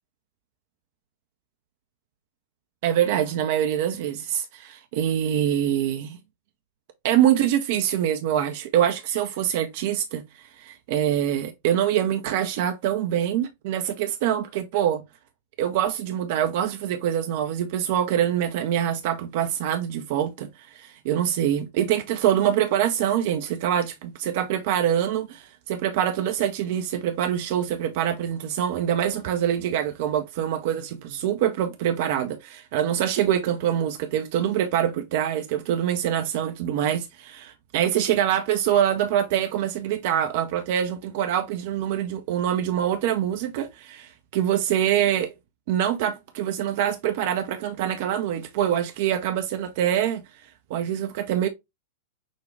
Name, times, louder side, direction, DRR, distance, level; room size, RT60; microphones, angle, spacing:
voice 1, 2.8-6.2 7.0-15.0 15.6-45.3 45.7-50.2 50.7-51.5, right 10 dB, 55° right, 0.6 m, -25 dB
6.3 x 2.3 x 3.1 m
figure-of-eight pair, 95°, 0 cm